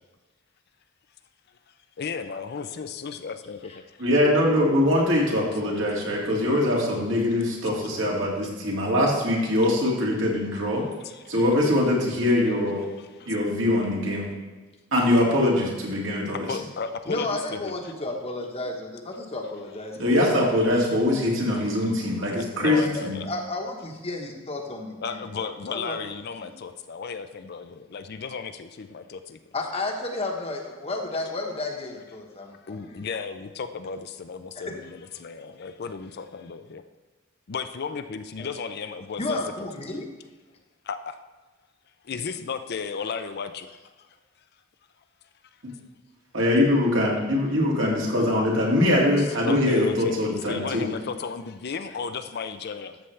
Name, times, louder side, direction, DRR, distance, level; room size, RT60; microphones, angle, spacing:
voice 1, 2.0-4.0 11.0-11.3 13.2-13.3 16.5-17.7 21.9-22.0 22.3-23.3 25.0-29.4 32.6-36.8 37.5-39.7 40.8-41.2 42.0-44.2 49.2-53.1, left 5 dB, 50° left, 9 dB, 0.5 m, -34 dB
voice 2, 4.0-10.9 11.3-12.8 13.3-14.3 14.9-16.5 20.0-23.2 46.3-50.9, left 1 dB, 65° right, -3 dB, 2.3 m, -22 dB
voice 3, 17.1-20.2 22.6-26.0 26.4-26.5 29.5-33.0 34.7-34.8 38.4-38.5 39.2-40.0, left 2 dB, 30° left, 2 dB, 1.1 m, -32 dB
13.0 x 7.0 x 3.3 m, 1.3 s
head